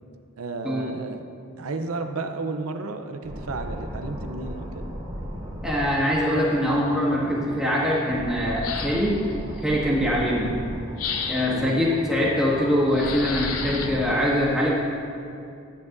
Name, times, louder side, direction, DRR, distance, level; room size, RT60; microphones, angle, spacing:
voice 1, 0.4-1.3 1.6-4.9 9.9-10.2 11.5-11.8, right 3 dB, 85° right, 7 dB, 0.7 m, -32 dB
sound 1, 3.2-14.0, equal, 35° right, 1.7 m, -36 dB
voice 2, 5.6-9.1 9.6-10.5 11.3-14.7, equal, 5° right, -6 dB, 1.6 m, -23 dB
sound 2, 8.6-9.3 11.0-11.7 12.9-13.9, left 6 dB, 85° left, 0.8 m, -32 dB
13.5 x 9.4 x 2.6 m, 2.5 s
head